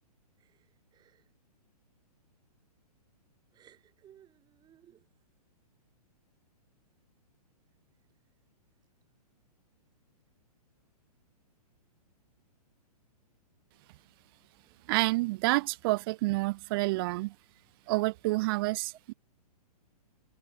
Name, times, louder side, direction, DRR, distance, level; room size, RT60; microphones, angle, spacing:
voice 1, 0.4-1.3 3.5-5.1 13.8-14.1 14.6-14.9 17.8-18.0, right 10 dB, 20° right, 7.2 m, -62 dB
voice 2, 14.9-17.3 17.9-19.1, right 22 dB, 35° right, 0.6 m, -28 dB
hypercardioid pair, 135°, 20 cm